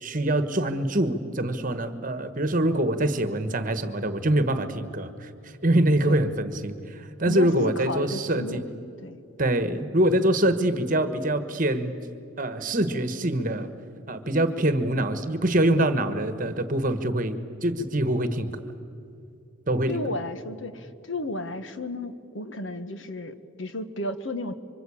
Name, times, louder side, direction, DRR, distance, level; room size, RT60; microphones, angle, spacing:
voice 1, 0.0-5.3 5.6-8.6 9.4-11.9 12.4-13.7 14.1-18.6 19.7-20.0, right 1 dB, 40° right, 11 dB, 1.3 m, -24 dB
voice 2, 6.0-6.4 7.3-8.7 9.0-9.2 19.9-24.5, left 2 dB, 65° left, 10 dB, 1.5 m, -33 dB
26.0 x 25.0 x 8.6 m, 2.6 s
head